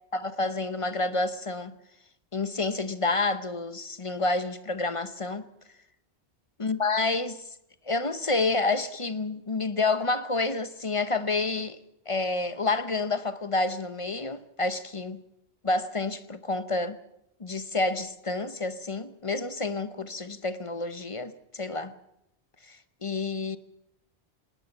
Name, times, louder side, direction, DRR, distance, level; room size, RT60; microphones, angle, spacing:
voice 1, 0.1-1.7 2.3-5.5 6.6-7.4 7.9-11.8 12.1-15.2 15.6-17.0 17.4-21.9 22.7-23.6, left 3 dB, 30° left, 0.9 m, -29 dB
19.5 x 19.5 x 7.9 m
omnidirectional pair, 1.1 m